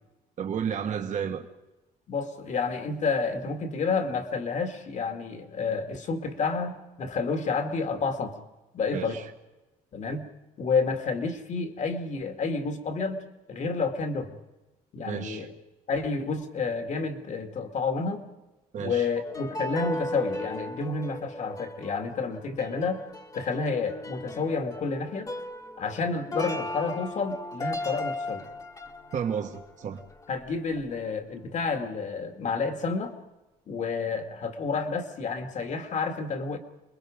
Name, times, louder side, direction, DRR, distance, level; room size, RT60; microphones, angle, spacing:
voice 1, 0.4-1.5 8.9-9.3 15.1-15.5 18.7-19.1 29.1-30.0, right 7 dB, 55° right, 4 dB, 1.6 m, -32 dB
voice 2, 2.1-8.3 8.7-9.2 9.9-10.2 10.6-13.2 13.5-14.4 14.9-15.5 15.9-18.2 18.8-23.0 23.3-25.3 25.8-28.4 30.3-33.1 33.7-36.6, left 4 dB, 55° left, 6 dB, 2.4 m, -30 dB
sound 1, 19.2-30.6 30.8-31.0, left 1 dB, 20° left, 1.5 m, -37 dB
28.0 x 21.5 x 5.2 m, 1.1 s
cardioid pair, 110°, 15 cm